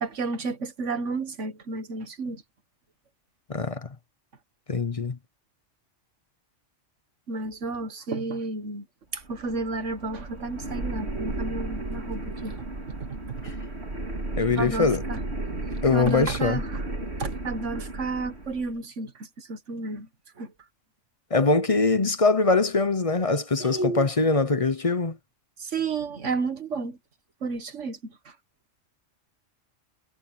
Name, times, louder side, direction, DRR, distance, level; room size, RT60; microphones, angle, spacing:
voice 1, 0.0-2.4 7.3-8.8 9.1-12.5 14.6-15.2 15.7-16.8 17.2-19.1 19.4-20.1 20.4-20.5 23.6-24.1 25.6-27.0 27.4-28.0, right 3 dB, 80° right, 1.9 m, -31 dB
voice 2, 3.5-3.9 4.7-5.2 13.4-13.5 14.4-15.0 15.8-16.6 21.3-25.2, left 3 dB, 30° left, 0.8 m, -23 dB
sound 1, 9.1-18.7, right 2 dB, 60° right, 3.7 m, -34 dB
omnidirectional pair, 1.2 m